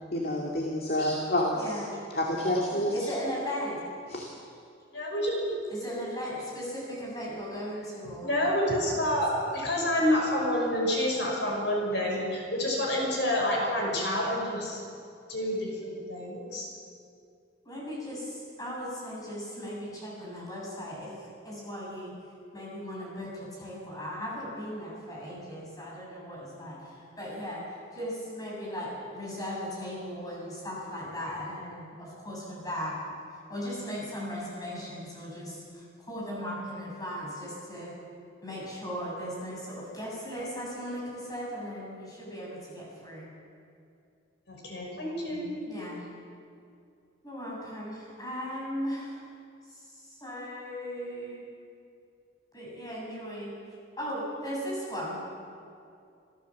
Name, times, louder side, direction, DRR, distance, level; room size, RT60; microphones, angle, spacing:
voice 1, 0.1-1.8 2.1-3.1 4.1-4.3, left 1 dB, 55° left, -1 dB, 2.4 m, -28 dB
voice 2, 1.5-2.0 2.9-3.8 5.7-8.4 8.9-9.0 15.9-16.0 17.6-21.1 21.4-22.1 22.5-27.6 27.9-32.9 33.5-38.0 38.4-43.3 45.2-46.1 47.2-49.2 49.7-49.8 50.1-51.4 52.5-53.5 54.0-55.2, equal, 20° left, -4 dB, 7.7 m, -37 dB
voice 3, 4.9-5.6 8.0-14.8 15.3-16.7 44.5-45.6, left 1 dB, 70° left, -1 dB, 6.1 m, -28 dB
26.5 x 15.5 x 7.4 m, 2.4 s
head